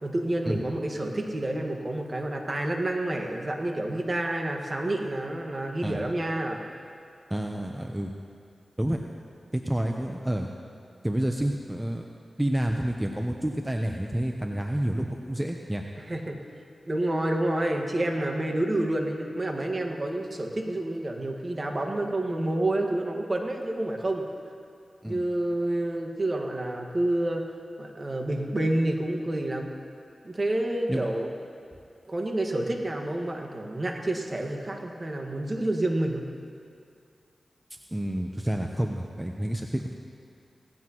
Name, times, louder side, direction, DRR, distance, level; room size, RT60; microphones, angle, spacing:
voice 1, 0.0-6.6 16.1-16.4 16.9-24.2 25.1-27.4 27.8-29.7 30.2-31.3 32.1-36.2, right 1 dB, 40° right, 2 dB, 1.7 m, -29 dB
voice 2, 7.3-8.1 8.8-9.0 9.5-10.5 11.0-12.0 12.4-15.9 25.0-25.2 30.9-31.1 37.9-39.9, right 1 dB, 15° right, 2 dB, 0.8 m, -29 dB
18.0 x 15.5 x 3.1 m, 2.4 s
cardioid pair, 55°, 0 cm